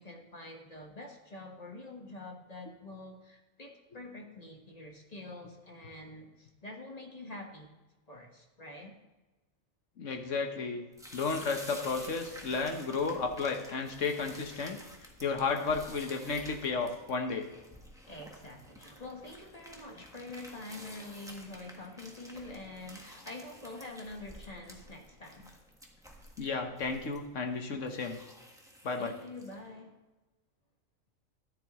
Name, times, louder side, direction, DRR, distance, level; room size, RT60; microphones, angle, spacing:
voice 1, 0.0-7.7 8.1-8.9 18.1-25.5 29.0-30.0, left 2 dB, 30° left, 1 dB, 1.5 m, -46 dB
voice 2, 10.0-10.8 11.1-14.8 15.2-17.5 26.4-28.2 28.8-29.1, left 4 dB, 65° left, 4 dB, 1.5 m, -33 dB
sound 1, 10.9-29.7, equal, 5° right, 1.3 m, -51 dB
13.5 x 10.0 x 3.1 m, 1.1 s
omnidirectional pair, 1.4 m